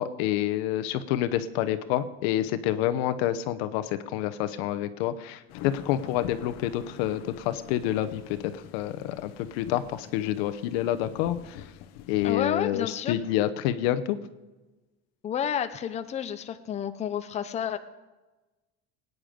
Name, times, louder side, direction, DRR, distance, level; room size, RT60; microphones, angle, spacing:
voice 1, 0.0-11.7 12.1-14.2, left 12 dB, 85° left, 12 dB, 1.0 m, -28 dB
sound 1, 5.5-12.4, left 11 dB, 60° left, 1.0 m, -45 dB
voice 2, 12.2-13.1 15.2-17.8, left 9 dB, 20° left, 9 dB, 0.6 m, -30 dB
19.0 x 9.7 x 5.2 m, 1.2 s
cardioid pair, 150°, 29 cm